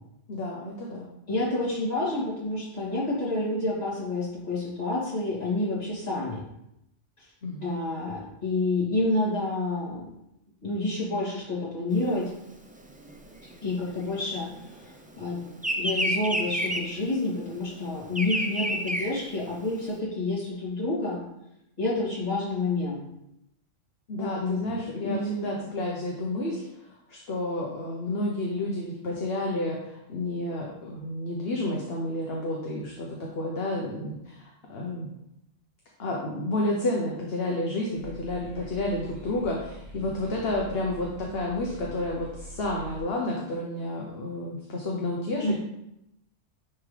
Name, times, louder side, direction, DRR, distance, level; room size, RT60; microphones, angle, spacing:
voice 1, 0.3-1.1 7.4-7.8 24.1-26.6 27.1-35.1 36.0-45.5, left 1 dB, 50° left, -2 dB, 1.1 m, -30 dB
voice 2, 1.3-6.4 7.2-7.3 7.6-10.1 10.6-12.3 13.6-15.5 15.8-21.2 21.8-23.0 24.2-24.7 25.0-25.5 45.4-45.6, left 2 dB, 30° left, -8 dB, 2.6 m, -29 dB
Bird vocalization bird call bird song, 12.0-14.9 15.2-19.9, equal, 10° right, 0.3 m, -30 dB
sound 1, 37.9-43.0, equal, 55° right, 2.0 m, -44 dB
9.9 x 3.7 x 3.3 m, 0.84 s
omnidirectional pair, 1.3 m